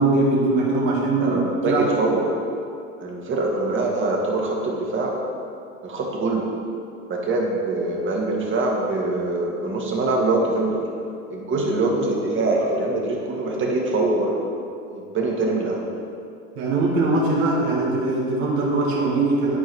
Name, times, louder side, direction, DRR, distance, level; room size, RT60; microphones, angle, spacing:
voice 1, 0.0-1.4 1.7-1.9 16.5-19.6, right 2 dB, 65° right, -4 dB, 1.9 m, -21 dB
voice 2, 1.2-2.3 3.0-5.2 5.8-6.5 7.1-10.8 11.3-14.4 14.9-15.8, right 2 dB, 30° right, -1 dB, 1.8 m, -23 dB
11.0 x 4.7 x 4.7 m, 2.4 s
hypercardioid pair, 95°, 42 cm